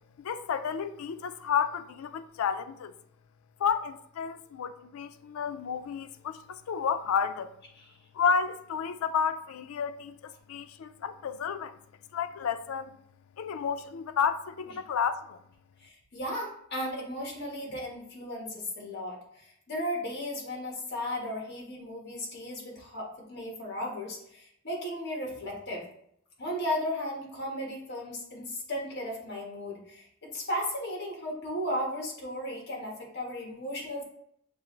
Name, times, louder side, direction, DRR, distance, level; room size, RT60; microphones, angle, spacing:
voice 1, 0.2-2.9 3.6-7.5 8.1-11.7 12.1-12.9 13.4-15.4, left 7 dB, 90° left, 0.4 m, -31 dB
voice 2, 15.8-25.9 26.4-34.0, equal, 50° left, 1.3 m, -35 dB
6.1 x 2.5 x 3.1 m
head